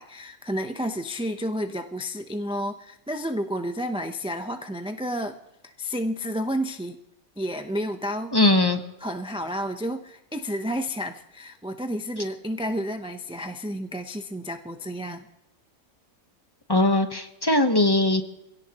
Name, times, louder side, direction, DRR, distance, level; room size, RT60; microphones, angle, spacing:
voice 1, 0.0-5.4 5.6-7.0 7.4-8.3 9.0-15.3, equal, 5° right, 6 dB, 0.4 m, -31 dB
voice 2, 8.3-8.8 16.7-18.2, left 2 dB, 20° left, 6 dB, 0.9 m, -20 dB
25.0 x 17.0 x 3.0 m, 0.91 s
omnidirectional pair, 1.4 m